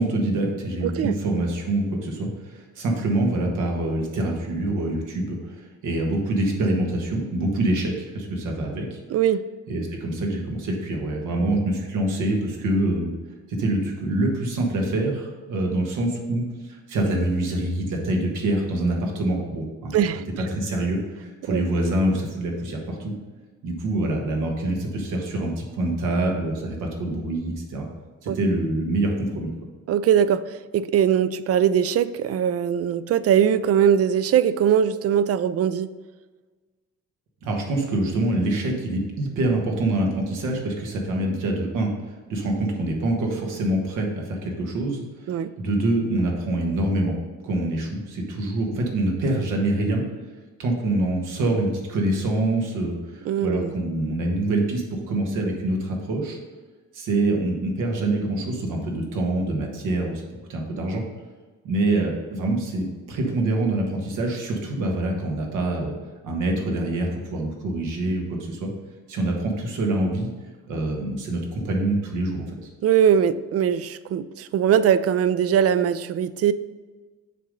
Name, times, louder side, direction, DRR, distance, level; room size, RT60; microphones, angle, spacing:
voice 1, 0.0-9.0 9.7-13.1 13.5-20.0 20.4-23.1 23.6-27.9 28.2-29.5 37.4-47.2 47.4-50.0 50.6-56.4 56.9-60.2 60.5-61.0 61.6-65.9 66.2-68.7 69.1-70.3 70.7-72.6, right 1 dB, 90° right, 0 dB, 1.4 m, -25 dB
voice 2, 0.8-1.2 9.1-9.4 19.9-20.2 21.4-21.6 28.3-28.4 29.9-35.9 45.3-45.5 53.3-53.7 61.9-62.0 72.8-76.5, right 9 dB, 50° right, 14 dB, 0.4 m, -21 dB
6.7 x 3.8 x 5.3 m, 1.3 s
cardioid pair, 90°, 30 cm